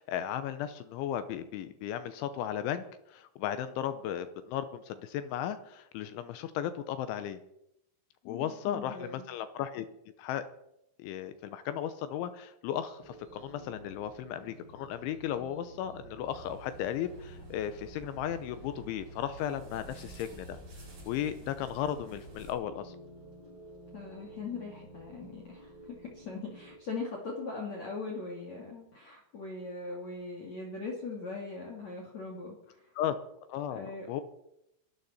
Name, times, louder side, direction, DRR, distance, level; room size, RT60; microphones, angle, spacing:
voice 1, 0.0-7.4 8.3-9.9 10.2-10.4 11.0-20.6 21.1-23.0 33.0-33.2 33.5-34.2, left 10 dB, 80° left, 11 dB, 2.9 m, -35 dB
voice 2, 8.2-9.2 23.9-32.9 33.7-34.2, left 3 dB, 45° left, -1 dB, 2.6 m, -40 dB
sound 1, 13.0-26.8, right 1 dB, 25° right, 4.7 m, -52 dB
sound 2, 16.3-22.5, right 2 dB, 45° right, 7.9 m, -51 dB
22.0 x 12.5 x 4.2 m, 0.82 s
omnidirectional pair, 5.9 m